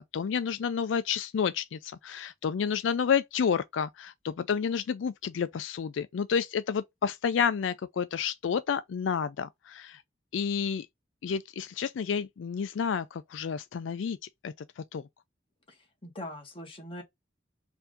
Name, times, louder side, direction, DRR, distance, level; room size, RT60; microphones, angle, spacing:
voice 1, 0.0-10.0 10.3-10.9 11.2-14.2 14.4-15.0, left 7 dB, 85° left, 0.4 m, -30 dB
voice 2, 15.7-17.0, left 1 dB, 30° left, 1.7 m, -42 dB
4.5 x 2.7 x 3.6 m
head